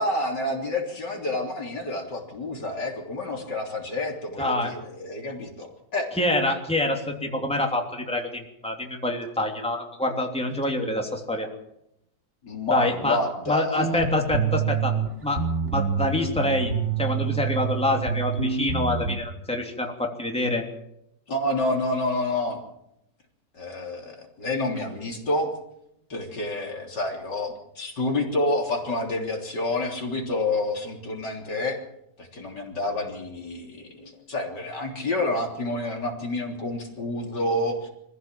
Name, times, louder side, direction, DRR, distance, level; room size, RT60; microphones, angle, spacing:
voice 1, 0.0-6.1 12.4-14.1 21.3-22.6 23.5-25.5 26.1-31.8 32.2-37.9, left 2 dB, 75° left, 1 dB, 4.1 m, -28 dB
voice 2, 4.4-4.7 6.1-11.5 12.7-13.2 13.5-14.9 15.2-15.4 15.7-16.7 17.0-20.6, left 1 dB, 5° left, 1 dB, 3.0 m, -26 dB
sound 1, 13.8-15.1 15.4-19.1, right 6 dB, 40° right, 3.0 m, -27 dB
25.0 x 15.0 x 7.6 m, 0.81 s
omnidirectional pair, 1.9 m